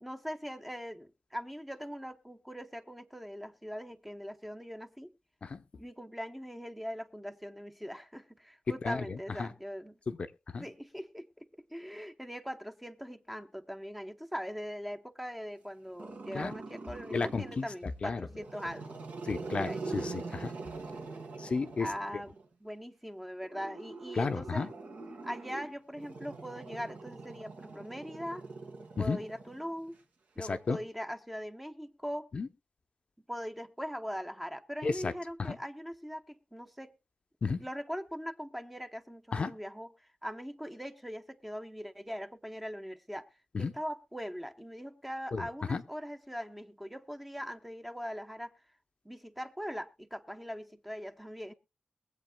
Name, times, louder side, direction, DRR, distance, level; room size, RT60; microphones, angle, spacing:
voice 1, 0.0-5.1 5.8-10.0 10.6-11.3 11.7-19.0 19.5-20.0 21.8-24.7 25.2-28.5 29.0-30.0 30.4-32.3 33.3-36.9 37.5-43.3 43.6-48.5 49.0-51.5, equal, 5° right, 0.7 m, -41 dB
Growling, 16.0-17.7 18.3-22.4 23.4-29.9, right 3 dB, 80° right, 2.5 m, -43 dB
voice 2, 17.1-17.7 18.0-18.3 19.3-20.5 21.4-21.9 24.2-24.7 29.0-29.2 30.5-30.8 32.3-32.5 34.8-35.1 35.4-35.6 37.4-37.6 39.3-39.5 43.5-43.7 45.3-45.4 45.7-45.8, left 4 dB, 45° left, 0.6 m, -32 dB
22.5 x 7.9 x 2.2 m
wide cardioid pair, 155°, 3 cm